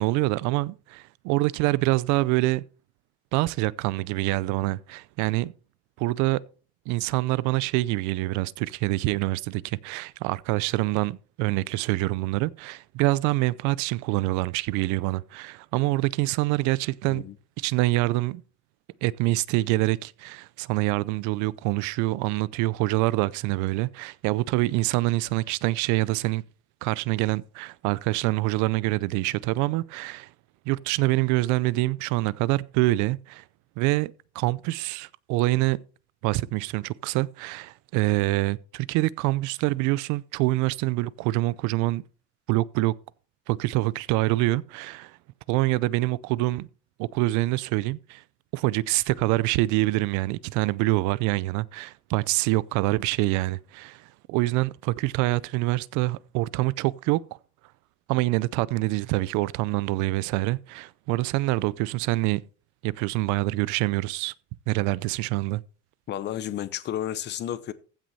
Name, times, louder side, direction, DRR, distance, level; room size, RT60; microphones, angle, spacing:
voice 1, 0.0-2.6 3.3-5.5 6.0-6.4 6.9-17.2 17.6-18.4 19.0-26.4 26.8-30.3 30.7-33.4 33.8-35.8 36.2-42.0 42.5-42.9 43.5-45.2 45.5-46.7 47.0-48.2 48.5-57.2 58.1-62.4 62.8-64.3 64.7-65.6, right 19 dB, 65° right, 0.6 m, -25 dB
voice 2, 66.1-67.7, left 11 dB, 35° left, 0.8 m, -32 dB
15.5 x 6.2 x 4.2 m
cardioid pair, 165°, 32 cm